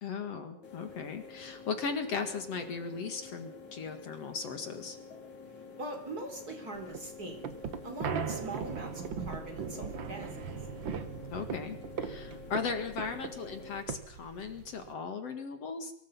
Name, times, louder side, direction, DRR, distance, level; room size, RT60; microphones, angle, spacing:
voice 1, 0.0-5.0 8.0-8.2 11.3-15.9, left 5 dB, 60° left, 7 dB, 2.9 m, -37 dB
sound 1, 0.6-13.8, left 5 dB, 80° left, 5.5 m, -49 dB
voice 2, 5.8-7.5 7.8-10.4, right 2 dB, 30° right, 4 dB, 4.3 m, -42 dB
sound 2, 6.8-14.9, right 7 dB, 50° right, 1.8 m, -39 dB
24.5 x 22.0 x 5.6 m, 0.65 s
omnidirectional pair, 3.3 m